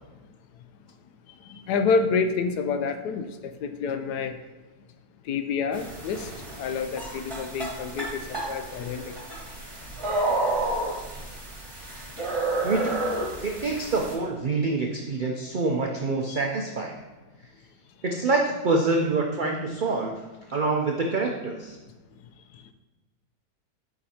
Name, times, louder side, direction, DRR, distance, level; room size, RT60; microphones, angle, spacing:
voice 1, 1.4-4.4 5.2-9.2 16.3-16.4, left 5 dB, 90° left, 8 dB, 1.2 m, -28 dB
sound 1, 5.7-14.1, right 2 dB, 20° right, 1.4 m, -31 dB
voice 2, 12.6-13.0 13.4-17.0 18.0-20.2 20.5-21.8, right 3 dB, 85° right, 1 dB, 0.4 m, -26 dB
8.2 x 5.2 x 2.8 m, 1.2 s
omnidirectional pair, 1.7 m